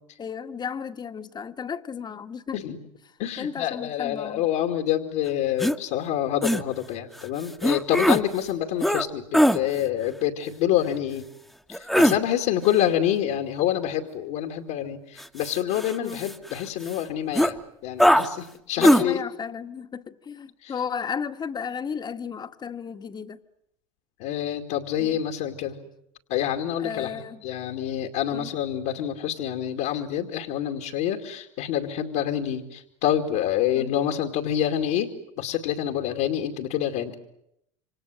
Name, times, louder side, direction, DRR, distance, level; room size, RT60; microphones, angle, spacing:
voice 1, 0.2-2.6 3.4-4.5 16.0-16.3 18.8-23.4 25.0-25.2 26.8-27.4 28.3-28.5 33.7-33.9, left 7 dB, 25° left, 1.6 m, -34 dB
voice 2, 3.2-11.2 11.7-17.6 17.8-19.2 20.6-20.7 24.2-25.8 26.3-35.1 35.4-37.2, left 11 dB, 65° left, 2.5 m, -27 dB
sound 1, 5.6-5.8 6.4-6.6 7.6-8.2 8.8-9.0 9.3-9.6 11.7-12.2 15.2-16.5 16.9-17.0 17.3-17.5 18.0-18.3 18.8-19.0, equal, ahead, 1.4 m, -20 dB
27.5 x 26.0 x 7.9 m
hypercardioid pair, 85°, 16 cm